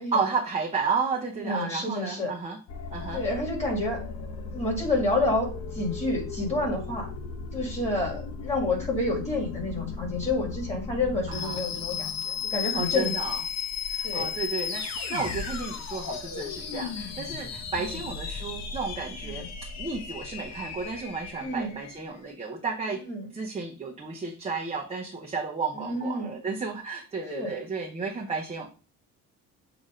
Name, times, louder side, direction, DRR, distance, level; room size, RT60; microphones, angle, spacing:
voice 1, 0.0-2.6 2.9-3.2 11.3-11.6 12.7-13.4 13.9-19.5 19.8-23.0 23.3-28.7, right 4 dB, 20° right, -1 dB, 0.8 m, -32 dB
voice 2, 1.4-2.3 3.1-4.0 4.5-7.1 7.5-13.1 14.0-14.3 19.2-19.5 21.4-21.8 23.0-23.3 25.8-26.3 27.3-27.5, left 2 dB, 20° left, 0 dB, 2.1 m, -29 dB
sound 1, 2.7-22.0, left 6 dB, 50° left, 1.0 m, -35 dB
7.4 x 2.8 x 4.9 m, 0.34 s
cardioid pair, 160°, 33 cm